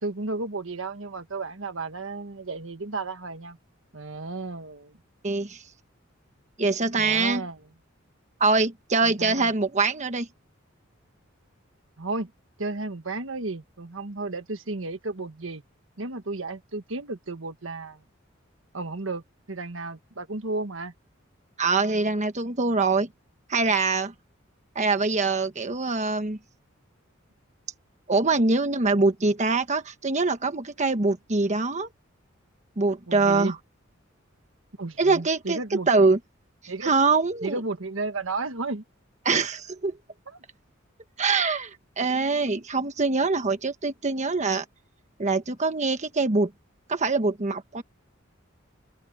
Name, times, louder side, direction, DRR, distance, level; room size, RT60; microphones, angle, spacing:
voice 1, 0.0-3.6 3.9-5.0 7.0-7.6 9.0-9.5 12.0-12.3 12.6-15.6 16.0-18.0 18.7-19.2 19.5-20.9 33.1-33.5 34.8-36.1 36.7-36.9 37.4-38.8 40.3-40.4, right 3 dB, 70° right, 1.5 m, -33 dB
voice 2, 5.2-5.6 6.6-7.4 8.4-10.3 21.6-23.1 23.5-24.1 24.7-26.4 28.1-31.9 32.8-33.5 35.0-35.6 35.9-36.2 36.8-37.6 39.2-40.0 41.2-44.6 45.2-46.5 46.9-47.8, right 3 dB, 35° right, 1.3 m, -24 dB
open air
head